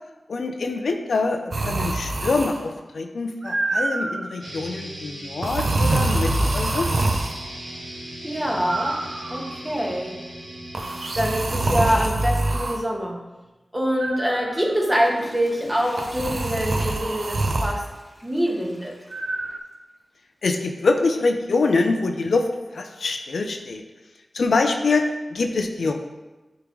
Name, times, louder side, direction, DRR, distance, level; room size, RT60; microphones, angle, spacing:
voice 1, 0.3-7.1 20.4-23.8 24.3-26.0, left 3 dB, 85° left, 5 dB, 0.5 m, -24 dB
sound 1, 1.5-2.7 3.4-4.3 5.4-7.4 8.7-9.6 10.7-12.8 14.0-14.7 16.0-17.8 19.1-19.6, right 2 dB, 60° right, 0.6 m, -25 dB
sound 2, 4.4-12.4, right 1 dB, 90° right, 1.9 m, -38 dB
voice 2, 8.2-9.0 9.3-10.1 11.1-13.2 13.7-17.9 18.2-18.9, equal, 15° right, -1 dB, 1.5 m, -25 dB
Water / Toilet flush, 14.6-19.9 20.4-20.5, equal, ahead, 1.9 m, -46 dB
9.8 x 3.7 x 3.1 m, 1.1 s
cardioid pair, 55°, 0 cm